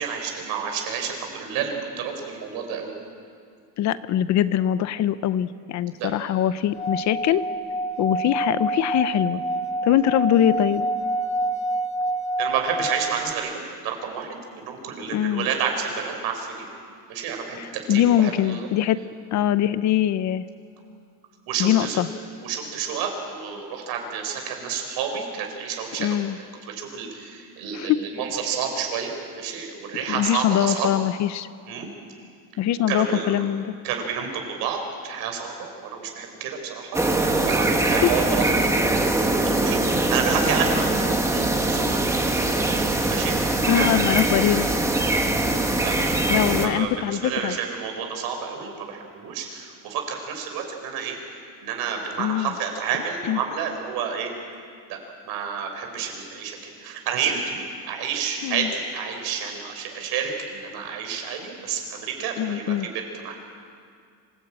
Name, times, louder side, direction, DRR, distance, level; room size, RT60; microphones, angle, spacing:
voice 1, 0.0-2.9 5.9-6.1 12.4-13.5 13.8-16.7 17.1-18.7 21.5-22.1 22.4-26.2 26.7-30.9 31.7-31.9 32.9-33.3 33.8-38.7 39.4-40.9 41.3-41.4 41.7-42.2 43.1-43.9 45.8-51.2 51.6-54.3 54.9-55.0 55.2-62.9 63.2-63.4, right 7 dB, 80° right, 3 dB, 5.1 m, -30 dB
voice 2, 3.8-7.4 8.0-9.4 9.8-10.8 15.1-15.5 17.6-19.0 19.3-20.4 21.6-22.1 26.0-26.4 27.7-28.0 30.1-31.5 32.6-33.8 37.8-38.1 43.4-44.7 46.3-47.6 52.2-52.5 53.2-53.4 58.4-58.7 62.4-62.9, left 11 dB, 50° left, 14 dB, 0.8 m, -22 dB
Singing / Glass, 6.7-13.3, right 1 dB, 20° left, 1.6 m, -27 dB
sound 1, 36.9-46.7, right 2 dB, 10° right, 1.5 m, -22 dB
26.0 x 17.5 x 9.0 m, 2.2 s
cardioid pair, 165°, 37 cm